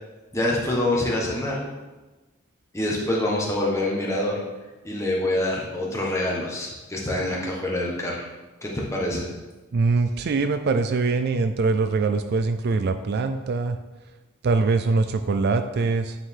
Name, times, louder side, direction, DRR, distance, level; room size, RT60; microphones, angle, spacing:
voice 1, 0.3-1.7 2.7-4.4 4.8-8.2 8.6-9.3, left 1 dB, 15° left, -3 dB, 1.3 m, -26 dB
voice 2, 9.7-13.8 14.4-16.2, right 3 dB, 50° right, 9 dB, 0.4 m, -23 dB
9.0 x 4.7 x 3.7 m, 1.2 s
head